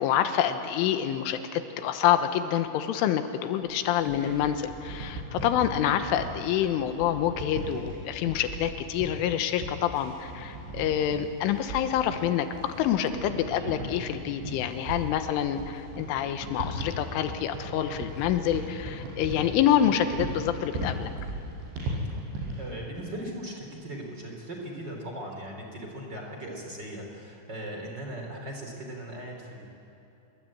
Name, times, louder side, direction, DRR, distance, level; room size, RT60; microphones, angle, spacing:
voice 1, 0.0-21.1, left 10 dB, 80° left, 9 dB, 3.4 m, -27 dB
sound 1, 3.6-22.7, right 1 dB, 60° right, 7.7 m, -37 dB
voice 2, 13.5-13.9 22.6-29.7, right 1 dB, 25° right, 1 dB, 3.0 m, -39 dB
27.5 x 22.0 x 8.8 m, 2.8 s
omnidirectional pair, 5.9 m